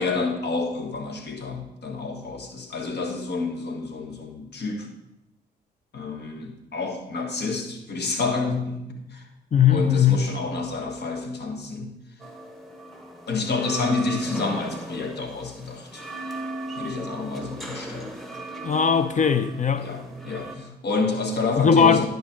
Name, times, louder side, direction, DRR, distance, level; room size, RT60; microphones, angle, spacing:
voice 1, 0.0-4.9 5.9-9.3 9.7-11.9 13.3-16.1 16.8-18.1 19.8-22.1, left 4 dB, 50° left, 1.7 m, -29 dB
voice 2, 9.5-10.2 18.6-19.9 21.6-22.1, left 7 dB, 35° left, 0.7 m, -19 dB
sound 1, 12.2-20.6, right 2 dB, ahead, 1.4 m, -37 dB
10.5 x 5.3 x 4.5 m
hypercardioid pair, 45°, 21 cm